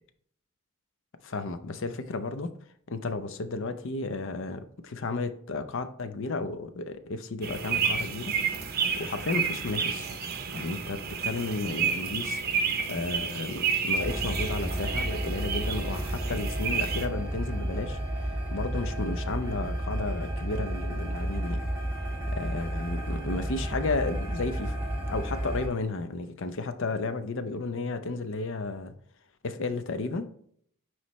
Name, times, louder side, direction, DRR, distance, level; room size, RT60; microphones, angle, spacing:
voice 1, 1.2-2.5 2.9-8.4 9.0-10.1 10.5-12.4 12.9-18.0 18.5-21.6 22.3-24.8 25.1-28.9 29.4-30.3, left 3 dB, 55° left, 10 dB, 0.6 m, -33 dB
sound 1, 7.4-17.1, right 6 dB, 45° right, 0.7 m, -30 dB
sound 2, 13.9-25.7, right 1 dB, 10° right, 1.6 m, -32 dB
9.5 x 3.2 x 3.1 m, 0.64 s
head